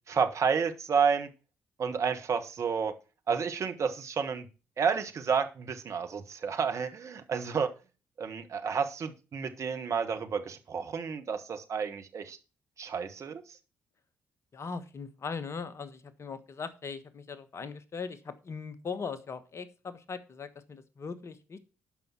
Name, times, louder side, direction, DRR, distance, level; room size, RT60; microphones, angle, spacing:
voice 1, 0.1-1.3 1.8-2.9 3.3-4.5 4.8-7.7 8.2-12.4 12.8-13.4, right 6 dB, 50° right, 7 dB, 1.3 m, -30 dB
voice 2, 14.5-21.6, left 5 dB, 45° left, 13 dB, 1.3 m, -40 dB
12.0 x 5.5 x 4.4 m, 0.33 s
hypercardioid pair, 45°, 7 cm